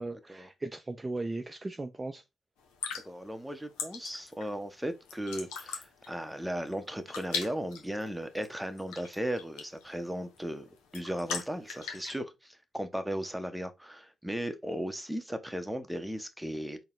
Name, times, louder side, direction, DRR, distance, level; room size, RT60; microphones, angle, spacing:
voice 1, 0.0-2.2, right 2 dB, 25° right, 0.5 m, -37 dB
sound 1, 2.6-12.2, left 6 dB, 80° left, 0.8 m, -41 dB
voice 2, 3.0-16.8, equal, 5° right, 0.8 m, -36 dB
4.0 x 2.2 x 3.8 m
hypercardioid pair, 45°, 0 cm